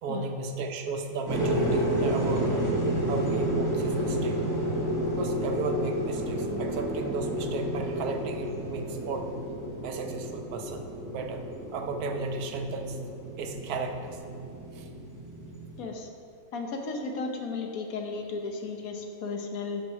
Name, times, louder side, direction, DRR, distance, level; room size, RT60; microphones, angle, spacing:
voice 1, 0.0-2.6 3.1-4.4 5.2-9.3 9.8-11.4 11.7-13.0 13.4-14.2 14.7-14.9, right 3 dB, 85° right, 5 dB, 1.2 m, -34 dB
sound 1, 1.3-15.8, right 1 dB, 15° right, 1.3 m, -30 dB
voice 2, 15.8-16.1 16.5-19.8, left 4 dB, 70° left, 3 dB, 1.3 m, -34 dB
7.6 x 5.2 x 5.7 m, 2.5 s
omnidirectional pair, 1.6 m